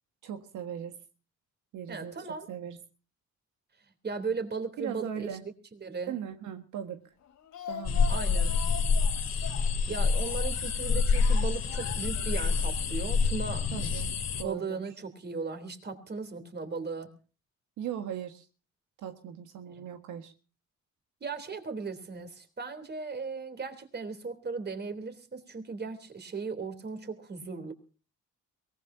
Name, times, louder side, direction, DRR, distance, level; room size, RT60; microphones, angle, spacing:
voice 1, 0.2-0.9 1.7-2.2 2.5-2.8 4.8-5.4 6.1-7.0 7.7-8.5 13.7-14.1 14.4-14.9 17.8-18.4 19.0-20.3, right 9 dB, 85° right, 6 dB, 1.7 m, -38 dB
voice 2, 1.9-2.5 4.0-5.3 5.8-6.1 8.1-8.5 9.9-13.7 14.4-17.1 21.2-27.7, right 4 dB, 35° right, 9 dB, 3.4 m, -37 dB
Speech, 7.2-10.7 11.2-12.3 12.6-12.7 13.0-13.1, left 10 dB, 75° left, 3.5 m, -43 dB
sound 1, 7.8-14.4, left 5 dB, 60° left, 2.5 m, -27 dB
23.0 x 18.5 x 2.8 m, 0.36 s
cardioid pair, 90°, 30 cm